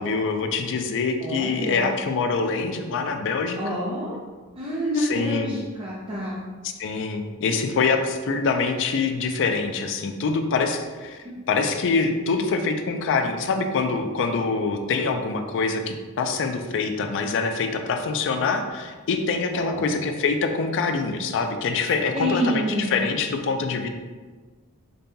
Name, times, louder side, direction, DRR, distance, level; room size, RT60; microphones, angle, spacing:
voice 1, 0.0-3.8 5.0-5.6 6.6-11.2 11.5-23.9, left 4 dB, 55° left, 6 dB, 0.4 m, -25 dB
voice 2, 1.2-1.9 3.6-4.2 4.6-6.4 19.5-19.8 22.1-23.0, equal, 25° right, -6 dB, 0.5 m, -28 dB
5.2 x 2.2 x 2.6 m, 1.4 s
head